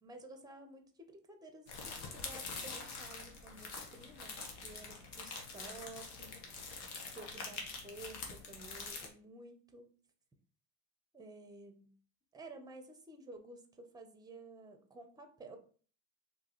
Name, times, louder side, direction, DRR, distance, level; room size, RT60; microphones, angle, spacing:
voice 1, 0.0-6.4 7.1-9.9 11.1-12.0 12.3-15.6, right 2 dB, 10° right, 6 dB, 0.7 m, -53 dB
sound 1, 1.7-9.1, left 4 dB, 65° left, 1.1 m, -45 dB
3.7 x 2.7 x 2.9 m, 0.42 s
supercardioid pair, 100°, 43 cm